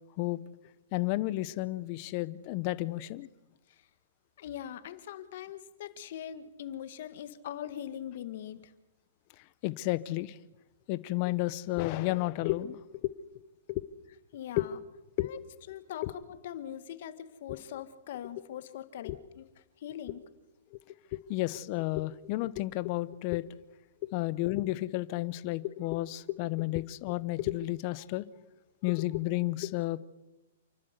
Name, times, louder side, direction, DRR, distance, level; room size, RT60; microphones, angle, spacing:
voice 1, 0.9-3.3 9.6-10.4 10.9-13.1 13.7-13.8 14.6-14.7 15.2-15.3 16.0-16.1 19.0-19.2 20.7-20.8 21.3-23.4 24.0-28.2 28.8-30.0, left 18 dB, 40° left, 16 dB, 0.9 m, -32 dB
voice 2, 4.4-8.7 14.3-14.8 15.2-15.4 15.7-19.5 19.8-20.2, left 10 dB, 60° left, 11 dB, 1.8 m, -42 dB
29.0 x 12.0 x 8.2 m, 1.0 s
hypercardioid pair, 140°, 0 cm